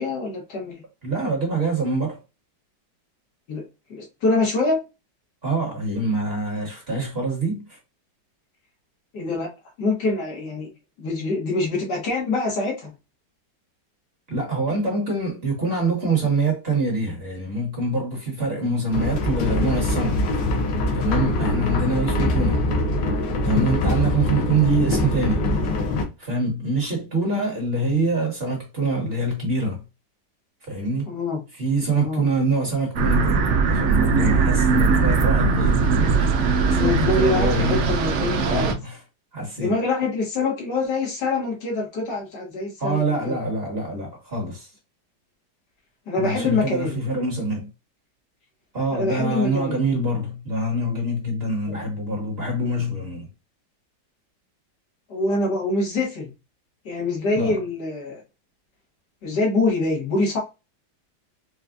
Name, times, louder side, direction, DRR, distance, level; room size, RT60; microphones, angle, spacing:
voice 1, 0.0-0.8 3.5-4.8 9.1-9.5 9.8-10.7 11.0-12.9 31.1-31.4 32.0-32.2 36.7-38.7 39.6-43.4 46.1-47.0 48.9-49.8 51.7-51.8 55.1-56.3 56.9-58.2 59.2-60.4, left 3 dB, 75° left, 1.8 m, -25 dB
voice 2, 1.0-2.2 5.4-7.8 14.3-20.3 20.9-22.6 23.4-25.5 26.2-29.8 30.6-31.1 31.5-37.9 38.4-39.0 39.3-39.8 42.8-44.7 46.2-47.7 48.7-53.3 57.3-57.6, right 2 dB, 35° right, 1.7 m, -25 dB
sound 1, 18.9-26.0, left 2 dB, 90° left, 1.4 m, -23 dB
sound 2, 33.0-38.7, right 5 dB, 80° right, 0.6 m, -20 dB
4.7 x 2.3 x 2.5 m
omnidirectional pair, 1.9 m